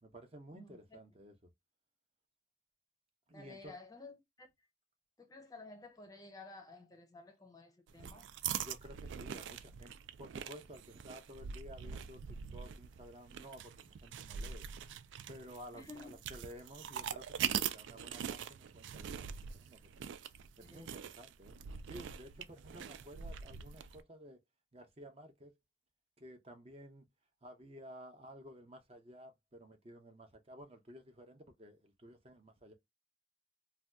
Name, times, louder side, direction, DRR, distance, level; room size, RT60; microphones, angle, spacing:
voice 1, 0.0-1.3 3.3-3.7 8.6-14.7 15.3-20.1 20.6-21.6 21.9-24.4 24.7-25.5 26.2-27.1 27.4-32.7, equal, 35° right, 0.6 m, -53 dB
voice 2, 0.5-1.0 3.3-4.5 5.2-8.3 15.7-16.1 20.6-20.9, left 3 dB, 20° left, 0.5 m, -53 dB
sound 1, 7.9-24.0, right 8 dB, 90° right, 0.3 m, -43 dB
2.6 x 2.2 x 3.3 m
head